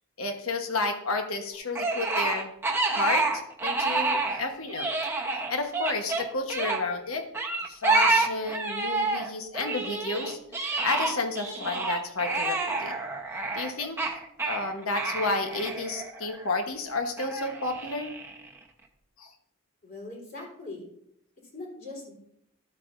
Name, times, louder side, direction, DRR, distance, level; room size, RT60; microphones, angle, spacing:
voice 1, 0.2-2.5 2.9-4.9 5.3-7.2 7.6-12.9 13.5-14.0 14.4-18.2 19.2-19.3, left 3 dB, 75° left, 5 dB, 1.2 m, -31 dB
sound 1, 1.7-4.4 4.7-6.8 7.3-9.3 9.5-16.5 17.2-18.5, right 3 dB, 10° right, 0.9 m, -28 dB
voice 2, 19.8-20.9 21.5-22.1, left 2 dB, 45° left, -3 dB, 3.9 m, -41 dB
13.0 x 8.5 x 2.6 m, 0.74 s
head